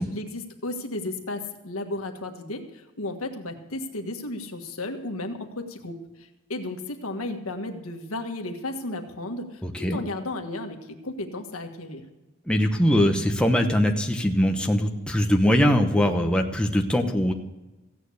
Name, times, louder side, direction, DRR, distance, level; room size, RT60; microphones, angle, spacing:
voice 1, 0.0-6.0 6.5-12.0, left 2 dB, 80° left, 5 dB, 1.6 m, -34 dB
voice 2, 9.6-10.0 12.5-17.3, equal, 5° left, 2 dB, 1.0 m, -22 dB
15.5 x 9.2 x 6.5 m, 1.1 s
head